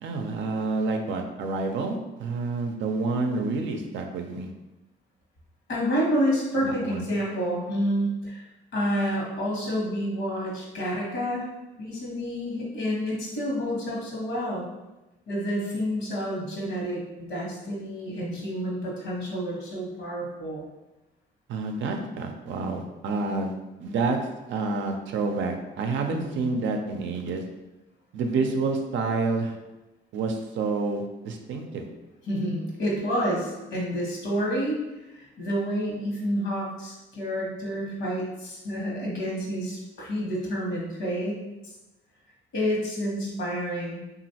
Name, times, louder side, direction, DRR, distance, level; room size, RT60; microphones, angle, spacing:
voice 1, 0.0-4.5 6.6-7.1 21.5-24.2 24.5-27.4 28.1-29.6 30.1-31.9, right 3 dB, 70° right, 4 dB, 0.4 m, -28 dB
voice 2, 5.7-8.4 8.7-11.4 11.8-14.6 15.3-20.7 26.1-26.5 32.3-34.8 35.1-41.7 42.5-44.0, equal, 70° left, -4 dB, 1.2 m, -29 dB
3.0 x 2.5 x 2.8 m, 1.0 s
cardioid pair, 90°, 20 cm